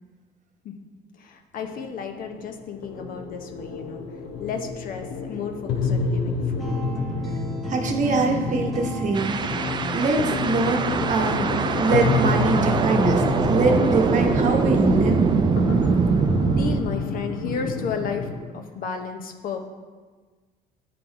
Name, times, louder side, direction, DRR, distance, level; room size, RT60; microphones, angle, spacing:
voice 1, 1.1-4.0 4.4-6.8 16.4-19.7, left 5 dB, 55° left, 5 dB, 0.7 m, -33 dB
sound 1, 1.5-18.4, left 4 dB, 85° left, 0.9 m, -29 dB
sound 2, 6.6-12.7, right 3 dB, ahead, 0.9 m, -34 dB
voice 2, 7.7-9.4 9.9-10.8 11.1-15.3, right 3 dB, 45° right, 3 dB, 0.9 m, -23 dB
sound 3, 9.1-16.8, right 5 dB, 25° right, 0.4 m, -23 dB
8.6 x 3.8 x 4.5 m, 1.4 s
cardioid pair, 110°, 17 cm